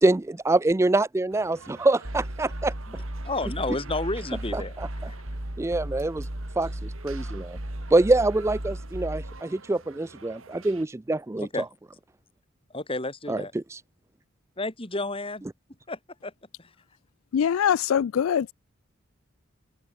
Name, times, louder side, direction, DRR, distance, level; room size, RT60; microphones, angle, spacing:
voice 1, 0.0-2.7 4.5-4.9 5.6-6.3 6.6-7.6 7.9-11.5 13.3-13.8, right 2 dB, 15° right, 0.3 m, -25 dB
sound 1, 1.3-10.9, right 4 dB, 85° right, 3.2 m, -49 dB
sound 2, 2.0-9.4, right 1 dB, 70° right, 3.6 m, -35 dB
voice 2, 3.3-4.8 5.1-5.2 11.4-11.7 12.7-13.5 14.6-15.4 15.9-16.3 16.6-16.7, left 2 dB, 25° left, 3.3 m, -31 dB
voice 3, 17.3-18.5, left 8 dB, 85° left, 0.4 m, -23 dB
head